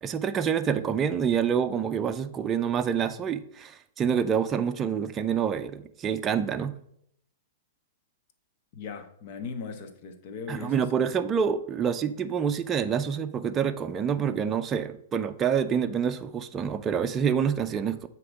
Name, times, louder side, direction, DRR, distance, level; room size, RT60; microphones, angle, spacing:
voice 1, 0.0-6.7 10.5-18.1, right 7 dB, 25° right, 7 dB, 0.5 m, -27 dB
voice 2, 8.7-10.7, left 5 dB, 50° left, 7 dB, 1.1 m, -38 dB
7.7 x 3.0 x 6.1 m, 0.70 s
hypercardioid pair, 130°, 0 cm